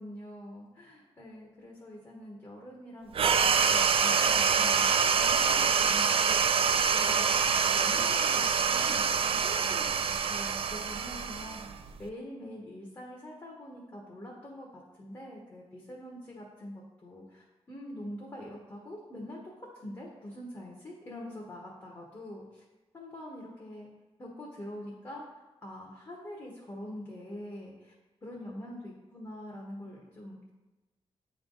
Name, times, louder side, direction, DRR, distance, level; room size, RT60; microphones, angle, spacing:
voice 1, 0.0-6.6 6.9-19.4 19.7-22.6 22.9-23.9 24.2-25.2 25.6-27.9 28.2-30.5, left 1 dB, 30° left, -3 dB, 1.3 m, -44 dB
sound 1, 3.1-12.0, right 6 dB, 60° right, 0.4 m, -26 dB
8.6 x 3.5 x 4.0 m, 1.1 s
wide cardioid pair, 100°, 11 cm